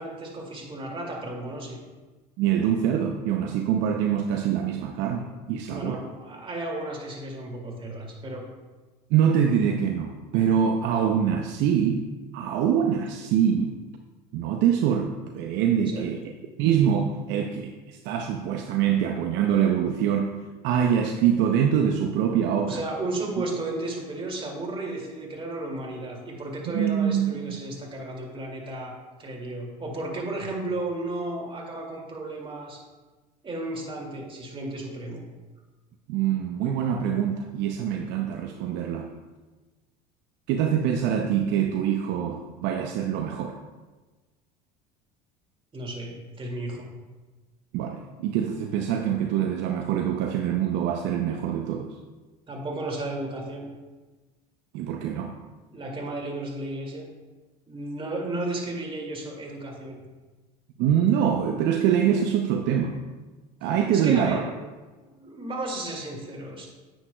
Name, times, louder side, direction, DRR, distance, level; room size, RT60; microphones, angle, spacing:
voice 1, 0.0-1.8 5.7-8.5 15.9-16.3 22.6-32.8 33.4-35.2 45.7-46.9 52.5-53.7 55.7-57.1 57.7-60.0 63.9-64.5 65.2-66.7, right 2 dB, 25° right, -1 dB, 2.3 m, -34 dB
voice 2, 2.4-6.0 9.1-12.0 12.3-13.7 14.3-16.2 16.6-20.3 20.6-22.8 26.7-27.6 36.1-39.1 40.5-43.5 47.7-51.9 54.7-55.3 60.8-63.0 63.6-64.4, right 8 dB, 60° right, 4 dB, 0.7 m, -24 dB
9.5 x 8.1 x 2.3 m, 1.3 s
hypercardioid pair, 75°, 21 cm